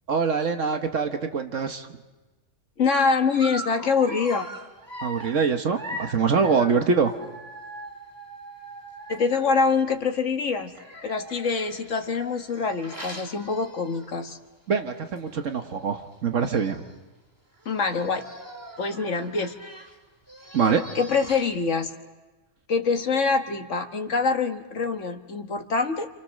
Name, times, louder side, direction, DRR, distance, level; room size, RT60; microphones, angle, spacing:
voice 1, 0.1-1.9 5.0-7.1 14.7-16.8 20.5-20.8, right 5 dB, 70° right, 6 dB, 1.5 m, -24 dB
voice 2, 2.8-4.5 9.1-10.7 11.0-14.4 17.7-18.3 18.8-19.5 21.0-21.9 22.7-26.1, left 5 dB, 65° left, 5 dB, 1.8 m, -25 dB
Dog, 3.3-9.9 10.7-14.3 14.7-14.9 15.2-15.3 16.1-16.2 16.4-17.0 17.6-21.7, right 1 dB, 15° right, 2.1 m, -41 dB
29.5 x 28.0 x 6.5 m, 1.2 s
omnidirectional pair, 1.4 m